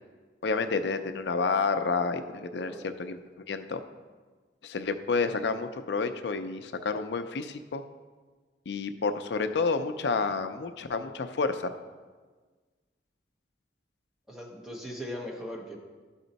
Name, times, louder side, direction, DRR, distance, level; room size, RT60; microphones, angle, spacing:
voice 1, 0.4-3.2 3.5-3.8 4.6-7.8 8.7-11.7, left 4 dB, 75° left, 9 dB, 0.5 m, -29 dB
voice 2, 14.3-15.8, equal, 5° right, -2 dB, 1.0 m, -39 dB
11.5 x 4.3 x 4.0 m, 1.4 s
head